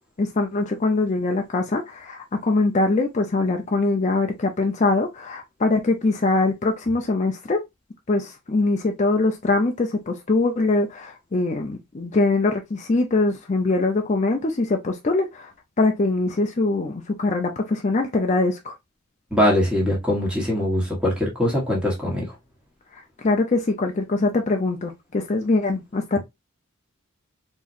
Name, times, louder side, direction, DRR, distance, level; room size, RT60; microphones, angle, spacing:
voice 1, 0.2-7.6 8.1-15.5 15.8-18.7 22.9-26.2, left 2 dB, 35° left, 0.5 m, -23 dB
voice 2, 19.3-22.3, left 1 dB, 5° right, 1.3 m, -22 dB
4.0 x 3.1 x 2.6 m
head